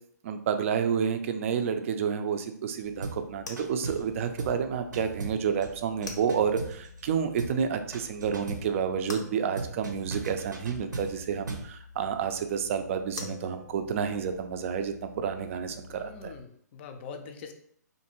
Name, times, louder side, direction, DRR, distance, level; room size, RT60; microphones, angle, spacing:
voice 1, 0.2-16.3, right 7 dB, 45° right, 8 dB, 0.4 m, -30 dB
sound 1, 2.8-16.4, left 4 dB, 90° left, 0.6 m, -47 dB
sound 2, 3.0-3.3 3.6-4.1 4.4-4.6 4.9-7.1 7.4-7.6 7.9-8.7 9.6-11.7, right 3 dB, 90° right, 0.6 m, -38 dB
voice 2, 15.9-17.5, left 5 dB, 40° left, 6 dB, 0.4 m, -43 dB
2.6 x 2.5 x 2.9 m, 0.64 s
hypercardioid pair, 140°, 10 cm